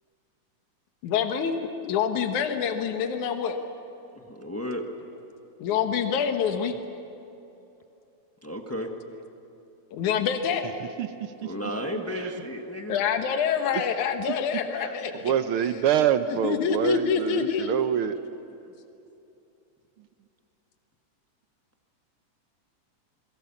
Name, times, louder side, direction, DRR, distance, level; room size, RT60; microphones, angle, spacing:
voice 1, 1.0-1.6 1.8-3.6 5.6-6.7 9.9-10.7 12.9-15.3 16.4-17.8, left 7 dB, 80° left, 6 dB, 2.7 m, -26 dB
voice 2, 4.1-4.8 8.4-8.9 11.4-13.0, equal, 20° left, 3 dB, 0.4 m, -33 dB
voice 3, 10.6-11.5 11.9-12.3 13.7-13.9 14.8-15.0 15.2-18.2, right 9 dB, 70° right, 10 dB, 1.3 m, -26 dB
29.0 x 22.0 x 7.2 m, 2.8 s
omnidirectional pair, 3.4 m